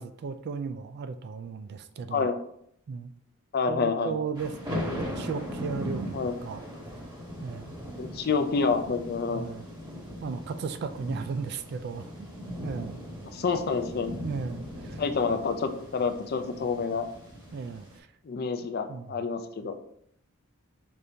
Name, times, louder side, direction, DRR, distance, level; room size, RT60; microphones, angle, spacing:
voice 1, 0.0-2.3 2.9-3.1 3.7-6.2 6.4-6.6 7.4-7.7 9.3-9.7 10.2-12.3 12.6-13.0 14.2-15.0 17.5-18.1 18.6-19.2, right 5 dB, 50° right, 10 dB, 0.3 m, -36 dB
voice 2, 3.5-4.2 6.1-6.3 8.0-9.5 13.3-14.1 15.0-17.1 18.3-19.8, left 4 dB, 45° left, 8 dB, 0.4 m, -28 dB
sound 1, 4.3-18.0, equal, 20° right, 1.0 m, -39 dB
5.1 x 2.7 x 3.3 m, 0.70 s
head